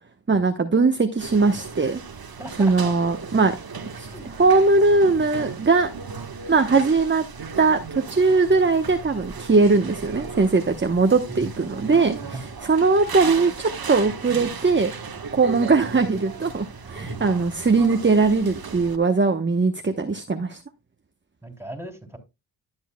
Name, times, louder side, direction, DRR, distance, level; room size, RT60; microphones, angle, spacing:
voice 1, 0.3-2.0 2.6-3.5 4.0-4.1 4.4-5.9 6.5-7.2 7.6-14.9 15.3-20.6, right 3 dB, 25° right, 1.0 m, -20 dB
sound 1, 1.2-19.0, right 5 dB, 50° right, 1.3 m, -36 dB
voice 2, 2.4-2.9 4.0-4.3 11.3-11.5 12.2-12.4 17.0-17.2 21.4-22.2, right 1 dB, 5° right, 3.1 m, -37 dB
12.5 x 7.1 x 2.2 m
cardioid pair, 40°, 46 cm